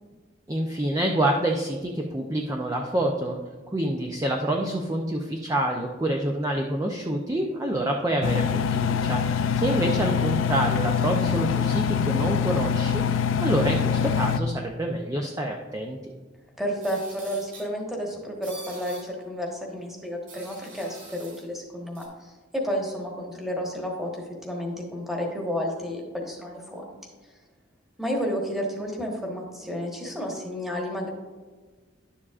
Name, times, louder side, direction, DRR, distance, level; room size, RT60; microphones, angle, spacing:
voice 1, 0.5-3.4 3.7-16.1, right 1 dB, 15° right, 1 dB, 0.5 m, -27 dB
Engine, 8.2-14.4, left 7 dB, 80° left, 0.4 m, -24 dB
voice 2, 16.6-27.0 28.0-31.1, equal, ahead, -1 dB, 1.3 m, -31 dB
sound 1, 16.8-17.7 18.4-19.1 20.3-21.4 21.9-22.1, right 2 dB, 70° right, 2.1 m, -45 dB
11.0 x 7.2 x 2.4 m, 1.3 s
head